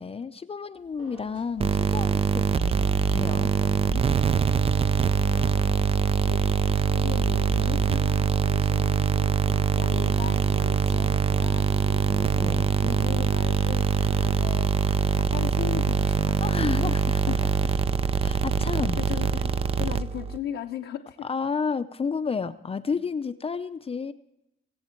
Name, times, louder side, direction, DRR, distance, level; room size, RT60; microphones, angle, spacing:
voice 1, 0.0-4.0 12.3-12.8 16.4-17.5 18.2-19.0 21.2-24.1, left 5 dB, 30° left, 11 dB, 0.6 m, -31 dB
sound 1, 0.7-16.0, right 3 dB, 70° right, 3.2 m, -55 dB
sound 2, 1.6-20.4, right 6 dB, 30° right, 0.5 m, -23 dB
voice 2, 5.1-5.7 6.3-6.4 6.9-12.4 12.8-14.7 15.2-17.0 17.3-17.5 19.0-19.5 19.8-21.3, left 11 dB, 80° left, 2 dB, 0.8 m, -38 dB
23.0 x 7.9 x 4.5 m, 0.88 s
cardioid pair, 90°, 20 cm